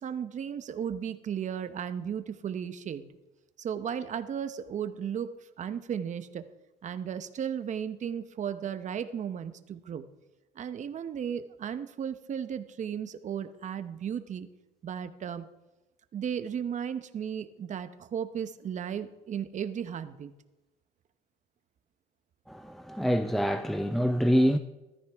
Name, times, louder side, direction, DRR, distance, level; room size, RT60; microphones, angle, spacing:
voice 1, 0.0-3.1 3.6-5.3 5.6-6.4 6.8-10.1 10.5-14.5 14.8-15.5 16.1-20.3, right 8 dB, 45° right, 0.9 m, -35 dB
voice 2, 22.5-24.6, equal, ahead, 0.5 m, -26 dB
15.5 x 13.0 x 3.6 m
cardioid pair, 110°, 17 cm